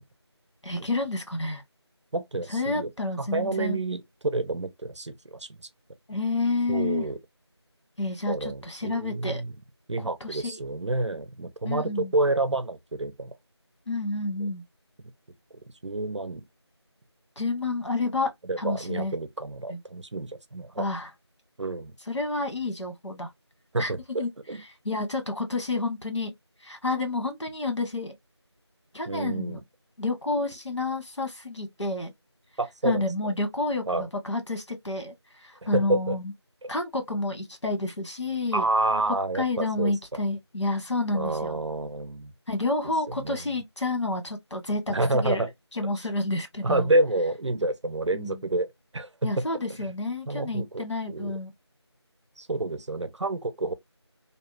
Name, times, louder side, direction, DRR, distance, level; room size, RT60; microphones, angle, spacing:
voice 1, 0.6-1.6 2.5-3.8 6.1-7.1 8.0-9.4 10.0-10.6 11.6-12.1 13.9-14.6 17.4-18.3 18.6-19.1 19.7-19.8 20.8-21.1 22.1-23.3 23.8-24.3 24.8-26.3 26.6-28.1 28.9-29.6 30.0-32.1 32.8-35.1 35.4-36.3 36.7-38.6 39.4-41.6 42.5-45.5 45.7-46.9 48.1-48.4 49.2-51.5, left 2 dB, 85° left, 1.1 m, -29 dB
voice 2, 2.1-2.9 3.2-5.5 6.7-7.2 8.3-9.5 9.9-13.3 15.8-16.4 18.5-20.9 21.6-22.0 23.7-24.6 29.1-29.6 32.6-33.0 33.9-34.0 35.6-36.2 36.6-36.7 38.5-39.9 41.1-42.3 43.2-43.4 44.9-45.5 46.6-48.7 48.9-49.4 49.8-49.9 50.3-51.3 52.4-53.7, right 2 dB, 85° right, 0.6 m, -28 dB
2.8 x 2.1 x 2.3 m
figure-of-eight pair, 180°, 15 cm